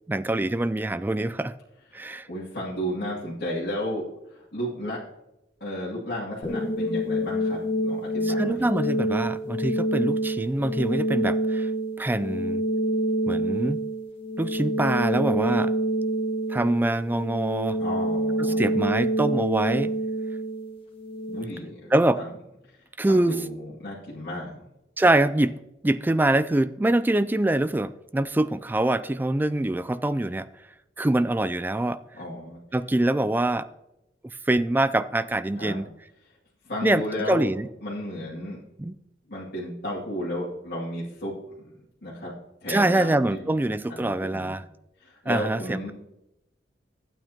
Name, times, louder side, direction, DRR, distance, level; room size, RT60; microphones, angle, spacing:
voice 1, 0.1-1.5 1.9-2.3 8.3-11.7 12.0-12.6 13.3-13.8 14.4-15.7 16.5-17.8 18.4-19.9 21.9-22.2 23.0-23.4 25.0-25.6 25.8-30.5 31.0-32.0 32.7-33.7 34.5-35.9 36.8-37.7 38.8-38.9 42.7-44.6 45.3-45.9, right 1 dB, 10° right, 14 dB, 0.3 m, -24 dB
voice 2, 2.0-5.0 5.6-9.0 17.8-18.8 21.3-21.9 22.2-22.3 22.7-22.8 23.1-24.6 32.1-32.6 35.6-35.8 36.6-37.5 37.8-38.6 39.3-41.3 41.6-41.7 42.0-42.3 42.6-43.6 43.9-44.6 45.0-45.9, equal, 60° left, -8 dB, 2.4 m, -33 dB
sound 1, 6.4-21.4, right 1 dB, 30° left, 1.5 m, -27 dB
13.0 x 9.1 x 2.9 m, 0.90 s
head